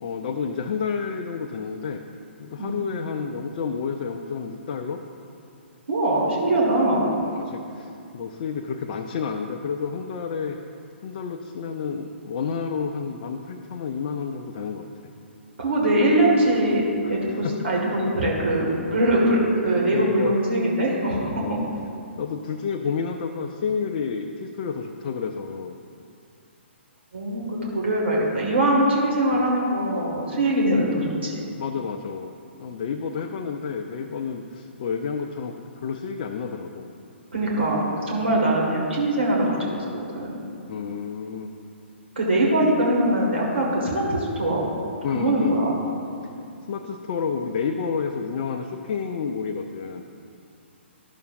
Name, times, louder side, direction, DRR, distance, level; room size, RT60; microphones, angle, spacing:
voice 1, 0.0-2.0 2.4-5.0 7.2-10.6 11.0-14.9 17.0-17.1 17.4-18.0 19.9-20.4 21.3-21.7 22.2-25.7 29.3-29.5 31.6-36.9 38.2-38.4 40.7-41.5 45.0-45.6 46.7-50.0, left 6 dB, 45° left, 3 dB, 0.5 m, -30 dB
voice 2, 5.9-7.1 15.6-16.8 17.1-21.7 27.1-31.4 37.3-40.4 42.2-44.7 45.1-45.7, right 1 dB, 65° right, -3 dB, 1.9 m, -22 dB
12.0 x 6.8 x 2.6 m, 2.5 s
figure-of-eight pair, 125°, 7 cm